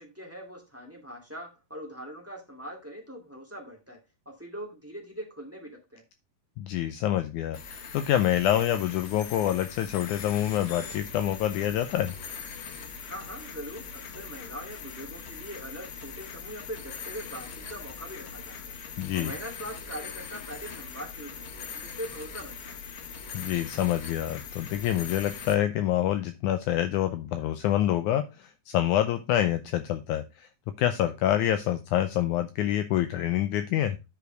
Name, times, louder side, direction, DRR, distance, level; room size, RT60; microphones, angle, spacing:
voice 1, 0.0-4.0 4.2-6.0 13.0-22.8, equal, 5° right, 2 dB, 1.4 m, -42 dB
voice 2, 6.6-12.2 19.0-19.3 23.3-30.5 30.8-34.0, left 12 dB, 85° left, 9 dB, 1.8 m, -27 dB
sound 1, 7.5-25.5, left 6 dB, 65° left, 1.3 m, -41 dB
10.0 x 4.9 x 4.5 m, 0.25 s
omnidirectional pair, 4.1 m